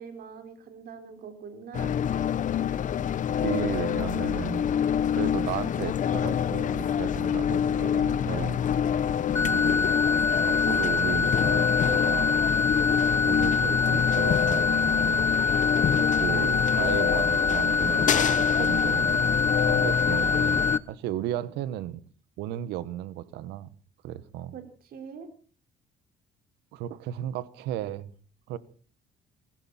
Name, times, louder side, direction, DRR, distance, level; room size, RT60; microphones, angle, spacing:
voice 1, 0.0-2.0 9.3-9.9 24.5-25.3, right 6 dB, 65° right, 6 dB, 4.6 m, -43 dB
sound 1, 1.7-20.8, left 9 dB, 50° left, 0.9 m, -26 dB
voice 2, 3.4-4.7 5.1-8.6 9.4-9.9 10.4-12.4 12.7-15.2 15.9-22.0 22.4-23.7 24.0-24.5 26.7-28.1 28.5-28.6, right 13 dB, 90° right, 16 dB, 1.3 m, -35 dB
sound 2, 9.4-20.8, left 4 dB, 15° left, 1.2 m, -25 dB
20.5 x 16.0 x 4.3 m, 0.41 s
cardioid pair, 110°, 17 cm